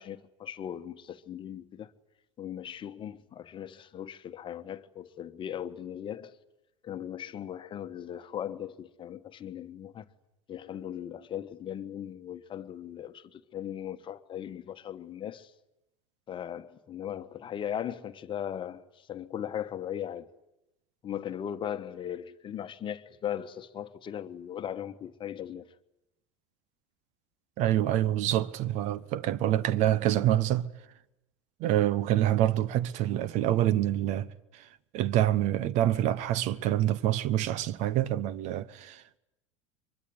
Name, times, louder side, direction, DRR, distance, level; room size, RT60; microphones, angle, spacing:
voice 1, 0.0-1.9 2.4-6.3 6.8-10.0 10.5-15.5 16.3-18.8 19.1-20.3 21.0-25.6, left 9 dB, 30° left, 1.3 m, -38 dB
voice 2, 27.6-30.7 31.6-34.7 34.9-39.2, right 12 dB, 45° right, 1.0 m, -26 dB
24.0 x 22.5 x 9.6 m
figure-of-eight pair, 75°, 16 cm